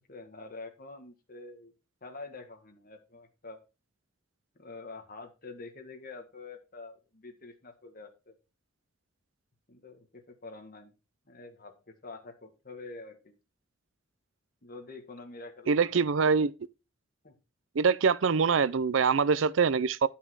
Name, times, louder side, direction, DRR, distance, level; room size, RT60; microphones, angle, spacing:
voice 1, 0.1-1.7 2.0-3.6 4.6-8.4 9.7-10.9 11.3-13.3 14.6-16.0 16.3-16.5 17.2-17.3, left 3 dB, 45° left, 1.9 m, -46 dB
voice 2, 15.7-16.5 17.8-20.1, right 5 dB, 75° right, 0.5 m, -24 dB
11.0 x 5.5 x 4.7 m
head